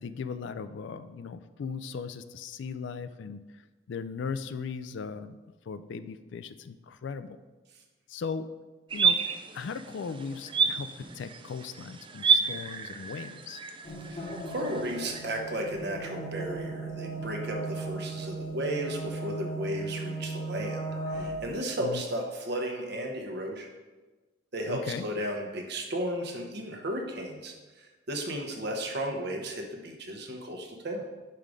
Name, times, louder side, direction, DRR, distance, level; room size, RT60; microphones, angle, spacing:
voice 1, 0.0-3.6 3.9-5.4 5.7-7.4 8.1-8.5 8.9-9.2 9.5-13.6 21.8-22.0 24.7-25.1, left 5 dB, 60° left, 12 dB, 0.3 m, -38 dB
sound 1, 8.9-15.2, right 6 dB, 25° right, 0.3 m, -30 dB
sound 2, 13.8-21.6, right 2 dB, 30° left, 0.9 m, -37 dB
voice 2, 14.0-23.7 24.5-31.1, right 1 dB, 55° right, 3 dB, 1.0 m, -34 dB
5.6 x 5.1 x 4.8 m, 1.2 s
head